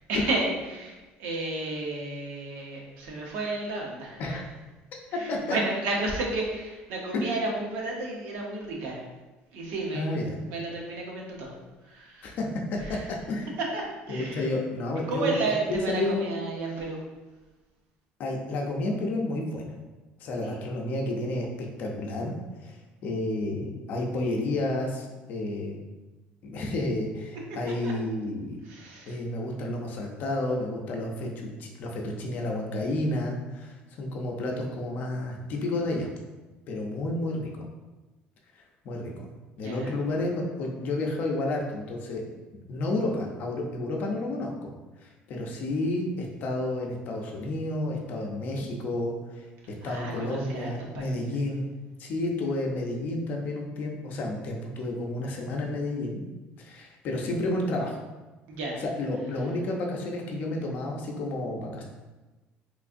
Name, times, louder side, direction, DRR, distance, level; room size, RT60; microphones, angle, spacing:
voice 1, 0.1-4.4 5.1-9.0 9.5-11.6 11.8-12.4 12.8-13.1 13.6-14.5 15.1-17.0 20.4-20.6 27.8-27.9 28.6-29.2 39.6-40.0 49.8-51.4 58.5-58.8, right 2 dB, 75° right, -1 dB, 0.8 m, -32 dB
voice 2, 9.9-10.4 12.2-13.5 14.1-15.3 15.6-16.3 18.2-19.7 20.2-22.3 22.6-25.8 26.4-28.6 29.1-36.1 36.7-37.7 38.8-39.3 39.6-42.2 42.7-44.7 45.0-49.4 49.8-51.6 52.0-56.2 56.6-58.0 58.8-61.8, left 2 dB, 50° left, 0 dB, 0.6 m, -31 dB
3.5 x 3.1 x 2.5 m, 1.2 s
cardioid pair, 165°, 4 cm